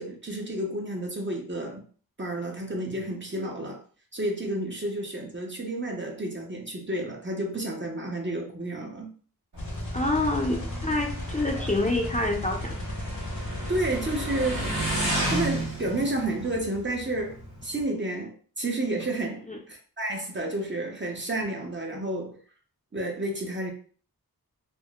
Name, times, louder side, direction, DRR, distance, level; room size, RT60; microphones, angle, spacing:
voice 1, 0.0-1.8 2.2-3.8 4.1-9.1 13.7-14.7 15.3-17.4 17.6-22.4 22.9-23.7, right 1 dB, 30° right, 0.6 m, -31 dB
Motorcycle, 9.5-17.8, right 1 dB, 80° right, 1.3 m, -33 dB
sound 1, 9.6-15.1, left 1 dB, 50° left, 0.8 m, -34 dB
voice 2, 9.9-12.7 19.5-19.6, left 2 dB, 20° left, 0.5 m, -27 dB
3.7 x 2.1 x 2.3 m
wide cardioid pair, 65°, 37 cm